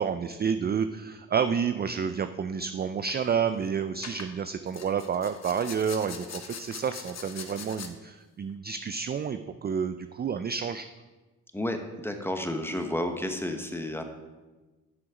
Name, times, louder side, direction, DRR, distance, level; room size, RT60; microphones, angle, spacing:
voice 1, 0.0-10.9, right 7 dB, 25° right, 11 dB, 0.4 m, -29 dB
sound 1, 2.8-3.1 4.0-4.3 4.7-7.9, left 6 dB, 45° left, 1.0 m, -42 dB
voice 2, 11.5-14.0, left 1 dB, 5° left, 6 dB, 1.1 m, -31 dB
7.6 x 6.2 x 5.0 m, 1.2 s
supercardioid pair, 65°, 38 cm